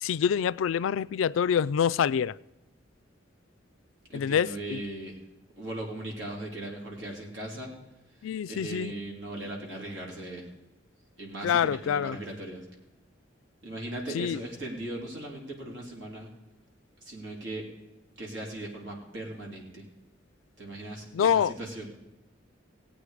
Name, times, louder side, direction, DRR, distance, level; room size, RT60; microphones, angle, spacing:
voice 1, 0.0-2.4 4.1-4.8 8.2-8.9 11.4-12.2 14.1-14.4 21.1-21.5, left 8 dB, 85° left, 0.3 m, -26 dB
voice 2, 4.1-5.2 5.6-7.7 8.2-10.5 11.2-12.6 13.6-16.3 17.0-17.7 18.2-19.8 20.6-21.9, right 1 dB, 70° right, 3.3 m, -38 dB
17.5 x 8.6 x 4.9 m
head